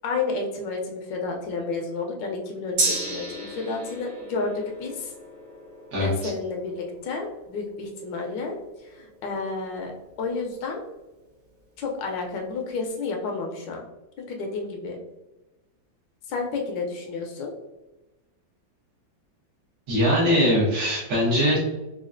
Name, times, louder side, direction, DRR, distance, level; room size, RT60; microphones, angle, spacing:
voice 1, 0.0-5.1 6.0-9.9 10.2-10.8 11.8-13.8 14.2-15.0 16.3-17.5, left 3 dB, 75° left, 2 dB, 1.3 m, -31 dB
Gong, 2.8-10.5 10.9-11.0, right 2 dB, 70° right, 1.9 m, -34 dB
voice 2, 5.9-6.3 19.9-21.8, equal, 85° right, -6 dB, 2.1 m, -22 dB
4.9 x 2.3 x 2.5 m, 1.0 s
omnidirectional pair, 2.1 m